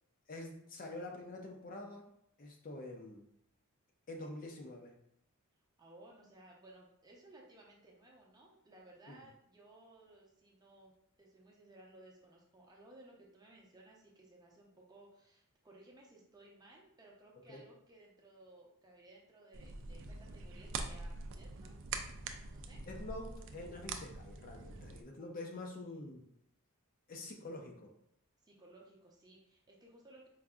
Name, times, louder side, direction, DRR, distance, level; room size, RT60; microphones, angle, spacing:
voice 1, 0.3-2.1 2.4-3.3 4.1-4.9 9.1-9.2 17.5-17.6 22.7-26.3 27.1-27.9, left 2 dB, 40° left, 2 dB, 0.5 m, -46 dB
voice 2, 5.8-10.9 11.2-21.8 22.5-22.8 28.4-30.3, right 2 dB, 20° right, -2 dB, 0.6 m, -59 dB
sound 1, 19.5-25.0, right 4 dB, 60° right, 0.4 m, -44 dB
4.7 x 2.6 x 2.3 m, 0.72 s
head